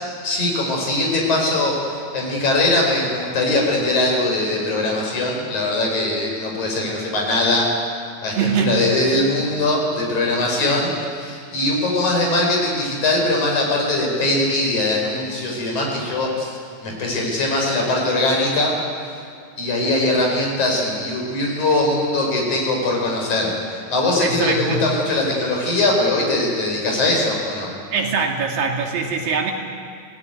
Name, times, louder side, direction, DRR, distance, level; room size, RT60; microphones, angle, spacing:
voice 1, 0.2-7.8 8.2-18.7 19.6-27.7, left 2 dB, 55° left, -1 dB, 6.6 m, -21 dB
voice 2, 8.3-9.0 10.6-10.8 24.2-24.9 27.9-29.5, right 5 dB, 80° right, 1 dB, 4.1 m, -23 dB
24.5 x 18.0 x 9.3 m, 2.2 s
omnidirectional pair, 4.0 m